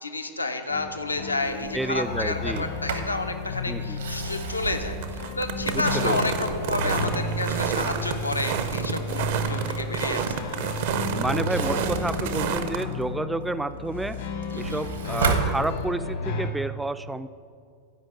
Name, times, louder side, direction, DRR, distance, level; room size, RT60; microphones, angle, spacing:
voice 1, 0.0-10.5 14.5-14.8, left 2 dB, 80° left, 7 dB, 0.6 m, -30 dB
sound 1, 0.7-16.5, left 3 dB, 60° left, 1.0 m, -33 dB
sound 2, 1.4-12.8, right 7 dB, 55° right, 0.6 m, -30 dB
voice 2, 1.7-2.7 3.7-4.0 5.7-6.5 6.8-6.9 11.1-14.2 14.5-17.3, right 2 dB, 5° right, 12 dB, 0.3 m, -30 dB
Sliding door, 2.4-3.2 3.8-6.2 6.7-8.9 11.3-13.2 13.7-16.2, right 5 dB, 70° right, 1.0 m, -33 dB
9.1 x 5.2 x 7.8 m, 2.2 s
figure-of-eight pair, 90°, 0 cm